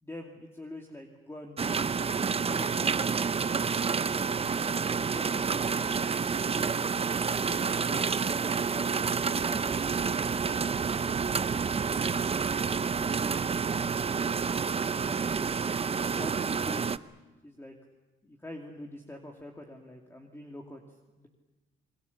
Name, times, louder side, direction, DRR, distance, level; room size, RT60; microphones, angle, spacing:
voice 1, 0.0-3.1 3.6-4.4 4.8-6.9 7.4-8.9 9.3-13.5 14.2-17.0 17.4-17.7 18.2-21.3, left 1 dB, 10° left, 1 dB, 2.5 m, -46 dB
sound 1, 1.6-17.0, right 5 dB, 30° right, 0.7 m, -29 dB
28.0 x 21.5 x 7.1 m, 1.1 s
cardioid pair, 90°, 20 cm